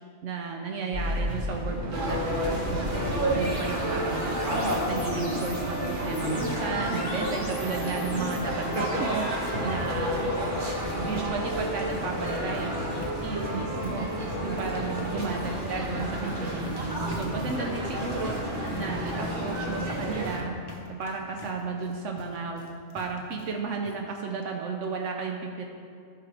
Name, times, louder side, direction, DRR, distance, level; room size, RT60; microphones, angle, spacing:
voice 1, 0.2-4.5 4.9-10.3 10.9-12.8 13.2-14.1 14.4-22.7 22.9-25.7, right 4 dB, 75° right, 2 dB, 1.0 m, -34 dB
sound 1, 0.9-12.0, equal, 15° right, 2.3 m, -37 dB
sound 2, 1.9-20.4, equal, 40° right, 1.3 m, -30 dB
sound 3, 10.8-23.6 23.8-24.0 24.4-24.5 24.8-24.9, left 2 dB, 20° left, 0.8 m, -47 dB
14.0 x 5.8 x 3.4 m, 2.3 s
omnidirectional pair, 1.3 m